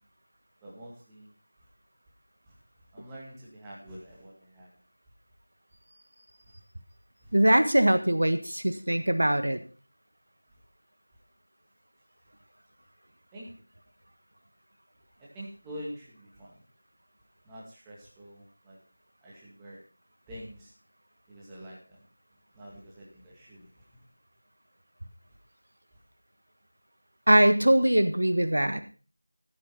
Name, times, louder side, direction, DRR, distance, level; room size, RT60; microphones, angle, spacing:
voice 1, 0.6-1.3 2.5-2.6 2.9-4.7 7.2-7.4 13.3-13.5 15.2-16.5 17.4-18.8 19.2-19.8 20.3-20.7 21.3-22.0 22.5-24.0, equal, 5° right, -5 dB, 2.1 m, -46 dB
voice 2, 7.3-9.6 27.3-28.8, right 1 dB, 65° right, 10 dB, 1.5 m, -22 dB
14.0 x 7.7 x 5.8 m, 0.36 s
figure-of-eight pair, 175°, 0 cm